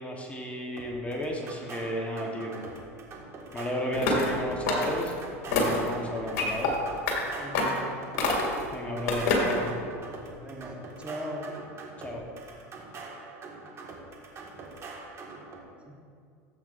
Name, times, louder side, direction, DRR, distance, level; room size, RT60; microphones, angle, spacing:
voice 1, 0.0-2.6 3.5-5.1 5.5-6.7 8.7-9.8 12.0-12.2, equal, 15° left, 0 dB, 1.1 m, -33 dB
sound 1, 0.8-15.6, right 3 dB, 35° right, 1.8 m, -44 dB
voice 2, 3.7-4.0 7.4-7.8 10.4-11.5 15.8-16.0, equal, 15° right, 0 dB, 1.3 m, -39 dB
sound 2, 4.0-4.3 4.7-5.1 5.5-5.9 6.4-6.7 7.1-7.2 7.5-7.8 8.2-8.6 9.1-9.6, left 3 dB, 65° left, 2.2 m, -26 dB
12.0 x 7.9 x 2.6 m, 2.2 s
hypercardioid pair, 95°, 8 cm